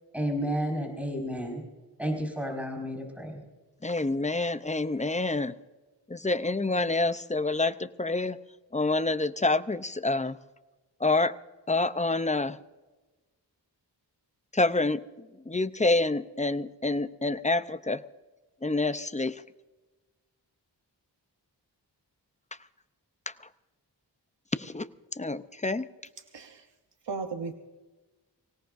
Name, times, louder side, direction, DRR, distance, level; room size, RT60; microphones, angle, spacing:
voice 1, 0.1-1.6 2.0-3.4, equal, 5° right, 0 dB, 5.1 m, -31 dB
voice 2, 3.8-5.5 6.1-8.4 8.7-10.4 11.0-11.3 11.7-12.6 14.5-15.0 15.5-18.0 18.6-19.4 24.5-24.9 25.2-25.9, left 2 dB, 15° left, 13 dB, 0.6 m, -27 dB
voice 3, 26.3-26.7 27.0-27.5, right 4 dB, 90° right, 5 dB, 1.0 m, -35 dB
24.5 x 17.5 x 2.6 m, 1.2 s
wide cardioid pair, 55°, 42 cm